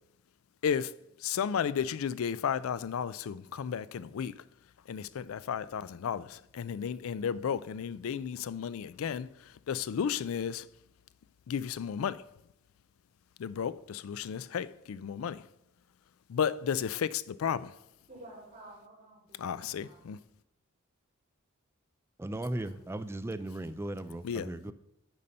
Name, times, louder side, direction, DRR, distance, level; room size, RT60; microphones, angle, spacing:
voice 1, 0.6-0.9 1.2-4.4 4.9-10.7 11.5-12.2 13.4-15.4 16.3-17.7 19.4-20.2 24.2-24.7, left 7 dB, 85° left, 0.4 m, -33 dB
voice 2, 18.1-20.1 22.5-22.9, right 1 dB, 40° right, 3.8 m, -52 dB
voice 3, 22.2-24.7, right 1 dB, 10° right, 0.3 m, -37 dB
10.5 x 4.2 x 5.3 m
head